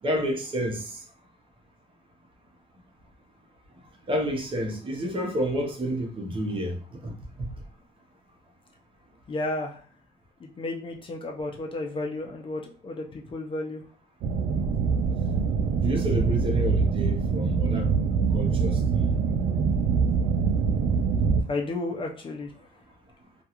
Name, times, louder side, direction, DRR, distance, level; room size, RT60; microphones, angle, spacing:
voice 1, 0.0-1.0 4.1-7.1 7.4-7.5 15.8-17.9 18.3-19.1, equal, 30° right, 0.7 m, -29 dB
voice 2, 9.3-9.8 10.4-13.8 21.5-22.5, left 2 dB, 30° left, 0.5 m, -32 dB
sound 1, 14.2-21.4, right 5 dB, 55° right, 0.4 m, -24 dB
2.4 x 2.3 x 2.9 m
cardioid pair, 110°, 17 cm